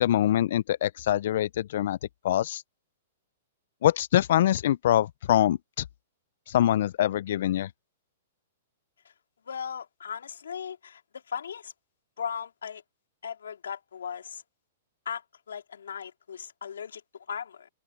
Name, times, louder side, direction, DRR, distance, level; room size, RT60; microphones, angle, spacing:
voice 1, 0.0-2.0 2.2-2.6 3.8-5.8 6.5-7.7, left 12 dB, 65° left, 0.4 m, -24 dB
voice 2, 9.4-11.7 12.2-12.8 13.2-14.4 15.0-17.7, left 7 dB, 90° left, 2.8 m, -37 dB
open air
hypercardioid pair, 140°, 0 cm